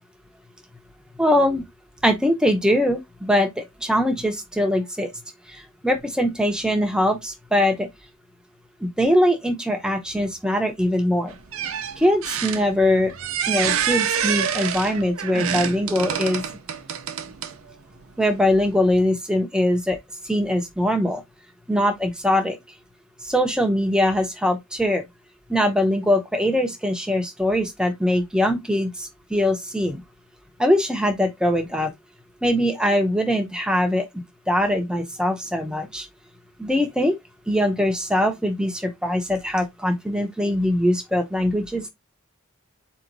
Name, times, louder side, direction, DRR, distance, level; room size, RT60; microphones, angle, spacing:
voice 1, 1.2-1.6 2.0-5.1 5.8-7.9 8.8-11.3 12.0-13.1 13.5-16.4 18.2-20.0 20.3-21.2 21.7-22.6 23.2-25.0 25.5-30.0 30.6-31.9 32.4-34.1 34.5-36.1 36.6-37.1 37.5-41.9, left 1 dB, 5° right, 0.8 m, -22 dB
sound 1, 11.3-17.7 18.4-18.5, right 8 dB, 70° right, 0.6 m, -27 dB
4.2 x 3.0 x 4.0 m
head